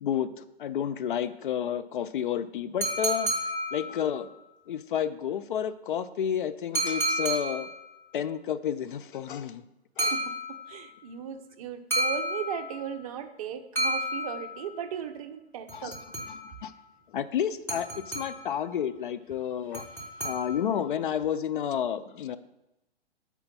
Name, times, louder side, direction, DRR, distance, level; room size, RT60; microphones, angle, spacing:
voice 1, 0.0-3.3 3.7-4.3 4.7-7.7 8.1-9.6 10.0-10.1 15.7-15.9 16.3-16.7 17.1-19.8 20.2-22.4, left 9 dB, 55° left, 12 dB, 0.4 m, -31 dB
sound 1, 2.8-4.3 6.7-7.9 10.0-10.9 11.9-12.9 13.8-14.8 15.7-16.6 17.7-18.6 19.7-20.8, right 1 dB, 5° left, 1.4 m, -31 dB
voice 2, 10.1-16.0 20.1-20.3, right 8 dB, 35° right, 9 dB, 0.5 m, -37 dB
6.7 x 4.5 x 5.4 m, 0.93 s
figure-of-eight pair, 120°, 31 cm